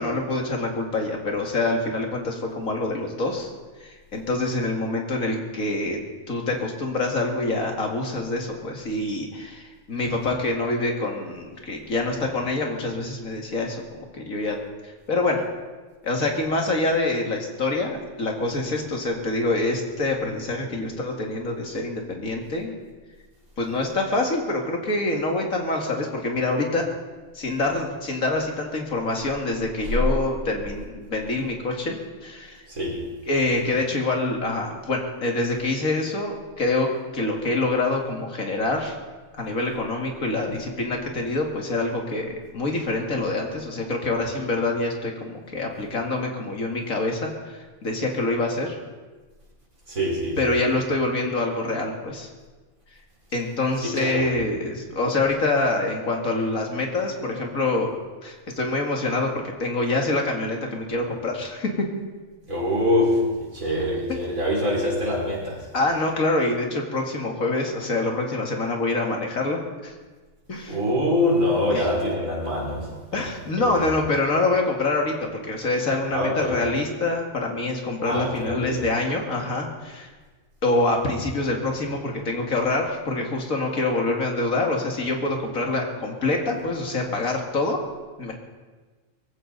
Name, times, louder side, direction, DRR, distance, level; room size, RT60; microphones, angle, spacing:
voice 1, 0.0-3.5 3.8-6.0 6.3-14.6 14.8-15.4 16.0-22.7 23.6-26.9 27.3-32.6 33.3-39.0 39.3-48.8 50.4-52.3 53.3-57.9 58.2-61.9 65.7-69.9 70.5-70.8 71.7-71.9 73.1-80.1 80.6-87.8 88.2-88.3, left 2 dB, 90° left, 1 dB, 2.7 m, -26 dB
voice 2, 32.7-33.1 49.9-50.5 53.8-54.4 62.5-65.7 70.7-73.3 73.6-73.9 76.1-76.6 78.0-78.9, left 1 dB, 85° right, -4 dB, 5.0 m, -25 dB
23.5 x 14.5 x 4.1 m, 1.3 s
omnidirectional pair, 1.4 m